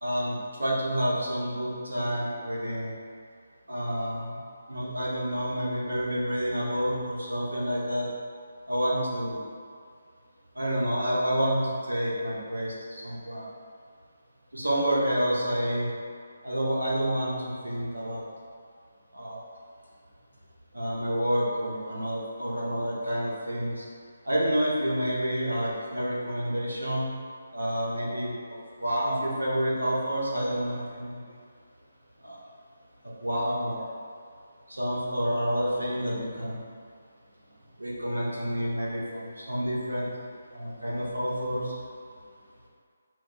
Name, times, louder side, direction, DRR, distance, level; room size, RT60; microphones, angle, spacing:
voice 1, 0.0-2.9 3.7-4.4 4.7-8.1 8.7-9.4 10.5-13.5 14.5-15.9 16.4-18.3 19.1-19.4 20.7-23.8 24.2-27.1 27.5-28.3 28.8-31.4 32.2-32.4 33.0-33.9 34.7-36.7 37.8-40.1 40.5-41.7, equal, 75° right, -5 dB, 1.0 m, -29 dB
5.9 x 2.6 x 2.2 m, 2.2 s
figure-of-eight pair, 145°, 0 cm